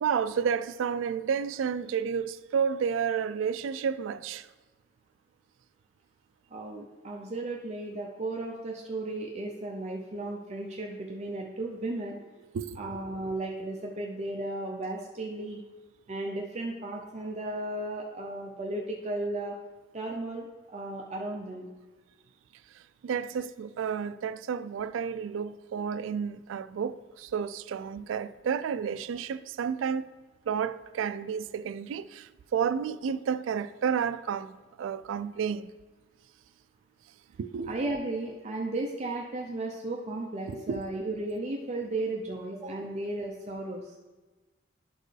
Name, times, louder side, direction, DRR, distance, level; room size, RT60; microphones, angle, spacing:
voice 1, 0.0-4.5 12.5-12.8 23.0-30.1 30.5-34.5 34.8-35.7 37.4-37.8 40.5-40.9, right 7 dB, 90° right, 0.3 m, -31 dB
voice 2, 6.5-12.2 12.8-15.6 16.1-19.5 19.9-21.7 37.7-43.8, right 2 dB, 35° right, 0.5 m, -35 dB
11.5 x 4.4 x 3.3 m
head